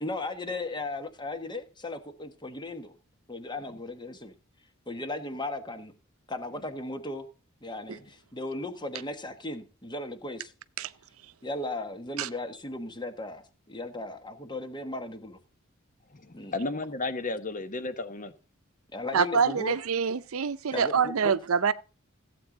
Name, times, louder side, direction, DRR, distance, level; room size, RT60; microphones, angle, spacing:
voice 1, 0.0-2.9 3.3-4.3 4.9-5.9 6.3-7.3 7.6-10.5 11.4-13.4 13.7-15.4 16.3-16.5 18.9-19.7 20.7-21.3, left 2 dB, 20° left, 1.3 m, -36 dB
voice 2, 16.1-18.3, left 3 dB, 40° left, 1.1 m, -33 dB
voice 3, 19.1-21.7, right 6 dB, 85° right, 0.5 m, -26 dB
15.5 x 8.0 x 3.8 m
head